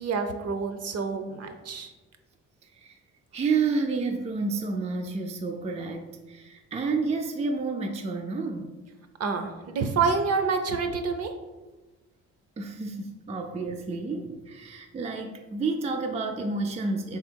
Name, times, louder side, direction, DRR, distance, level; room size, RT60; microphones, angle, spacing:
voice 1, 0.0-1.9 9.2-11.3, right 5 dB, 55° right, 0.7 m, -28 dB
voice 2, 3.3-8.7 12.6-17.2, right 4 dB, 20° right, 0.4 m, -30 dB
3.5 x 3.4 x 4.5 m
cardioid pair, 90°, 30 cm